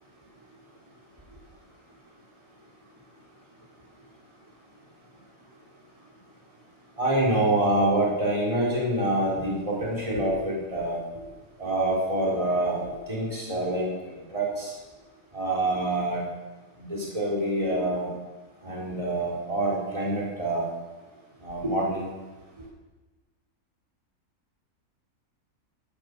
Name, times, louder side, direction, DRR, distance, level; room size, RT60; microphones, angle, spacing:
voice 1, 7.0-11.0 11.6-13.9 14.3-14.7 15.3-16.2 16.8-18.1 18.6-20.7 21.4-22.1, right 1 dB, 20° right, -4 dB, 4.2 m, -26 dB
18.0 x 11.5 x 6.8 m, 1.2 s
omnidirectional pair, 1.7 m